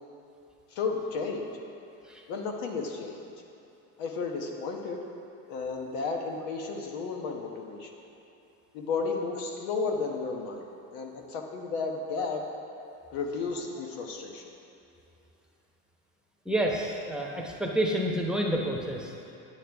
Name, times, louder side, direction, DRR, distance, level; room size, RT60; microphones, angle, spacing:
voice 1, 0.7-1.5 2.3-3.3 4.0-5.0 5.5-7.9 8.7-12.4 13.1-14.5, left 4 dB, 85° left, 2 dB, 1.2 m, -33 dB
voice 2, 16.4-19.1, right 1 dB, ahead, -1 dB, 1.0 m, -29 dB
9.6 x 9.1 x 3.5 m, 2.9 s
cardioid pair, 110°, 35 cm